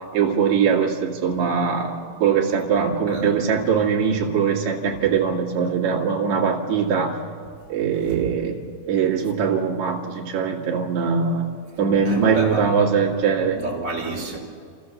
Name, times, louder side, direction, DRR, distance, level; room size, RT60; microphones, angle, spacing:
voice 1, 0.1-7.1 7.7-8.6 8.9-13.6, right 6 dB, 50° right, -3 dB, 3.2 m, -22 dB
voice 2, 2.7-3.3 8.0-8.2 12.0-12.7 13.5-14.4, right 2 dB, 35° right, -2 dB, 4.0 m, -30 dB
30.0 x 14.0 x 7.2 m, 2.2 s
omnidirectional pair, 4.3 m